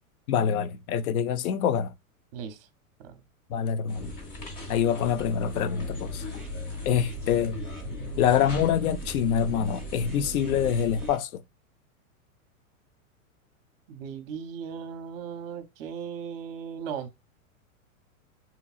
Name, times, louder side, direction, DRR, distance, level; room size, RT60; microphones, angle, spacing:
voice 1, 0.3-1.9 3.5-4.1 4.7-6.2 6.8-7.6 8.2-11.4, left 8 dB, 90° left, 0.5 m, -25 dB
voice 2, 2.3-2.7 3.0-3.2 13.9-17.1, right 7 dB, 45° right, 0.6 m, -37 dB
sound 1, 3.9-11.1, left 2 dB, 30° left, 0.9 m, -40 dB
sound 2, 5.8-11.2, right 1 dB, ahead, 0.3 m, -39 dB
2.9 x 2.6 x 2.4 m
supercardioid pair, 155°, 42 cm